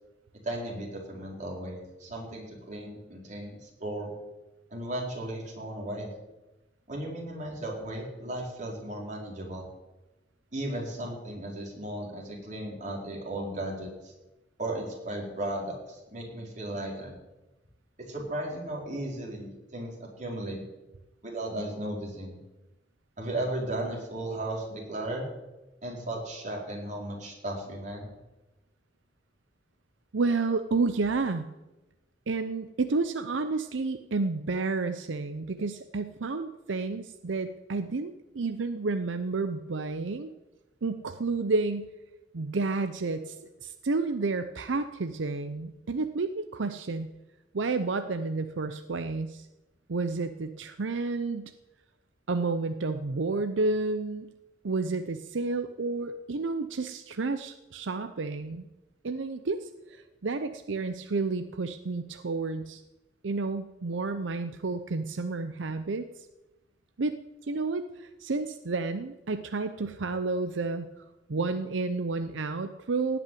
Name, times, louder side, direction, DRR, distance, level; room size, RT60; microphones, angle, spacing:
voice 1, 0.4-4.1 4.7-6.1 6.9-9.7 10.5-14.1 14.6-17.1 18.1-20.6 21.2-22.4 23.2-25.3 25.8-28.1, right 1 dB, 40° right, -2 dB, 4.2 m, -35 dB
voice 2, 30.1-31.5 32.3-40.3 40.8-41.9 42.3-43.4 43.6-47.1 47.5-49.5 49.9-51.5 52.3-54.3 54.6-58.7 59.0-62.8 63.2-66.1 67.0-67.2 67.5-70.9 71.3-73.2, right 3 dB, 85° right, 9 dB, 0.7 m, -30 dB
17.5 x 6.0 x 9.2 m, 1.0 s
head